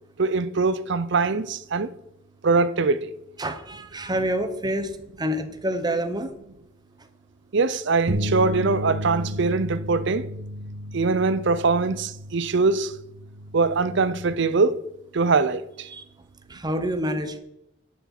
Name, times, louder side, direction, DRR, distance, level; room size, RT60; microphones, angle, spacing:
voice 1, 0.2-1.9 2.4-3.1 7.5-10.3 10.9-12.9 13.5-14.8 15.1-15.9, right 4 dB, 65° right, 0.6 m, -22 dB
voice 2, 3.4-6.3 15.9-16.0 16.5-17.4, right 1 dB, 20° right, 1.1 m, -27 dB
sound 1, 8.1-14.3, equal, 45° right, 1.1 m, -33 dB
11.0 x 7.1 x 6.0 m
head